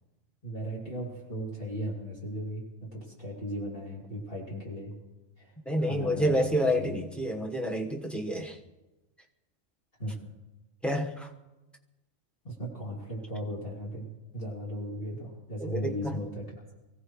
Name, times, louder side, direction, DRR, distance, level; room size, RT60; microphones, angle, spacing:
voice 1, 0.4-2.6 2.9-4.9 5.4-5.5 5.8-6.5 6.7-7.0 10.0-10.2 12.4-14.1 14.3-16.4, equal, 40° left, -5 dB, 3.1 m, -36 dB
voice 2, 5.6-8.6 10.8-11.3 15.6-16.2, equal, ahead, 1 dB, 1.1 m, -29 dB
24.0 x 16.0 x 3.2 m, 1.1 s
omnidirectional pair, 1.4 m